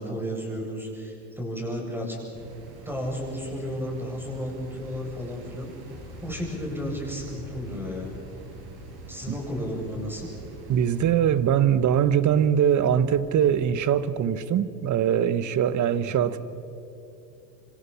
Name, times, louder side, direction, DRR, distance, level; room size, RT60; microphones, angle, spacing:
voice 1, 0.0-2.2 2.8-5.7 6.2-8.2 9.1-10.3 15.8-16.2, equal, 5° right, 7.9 m, -33 dB
Noise texture, 2.3-11.1, right 4 dB, 50° right, 6.4 m, -45 dB
sound 1, 5.8-13.7, left 5 dB, 60° left, 5.3 m, -47 dB
voice 2, 10.7-16.4, right 9 dB, 35° right, 1.3 m, -22 dB
27.5 x 26.0 x 5.9 m
hypercardioid pair, 85°, 49 cm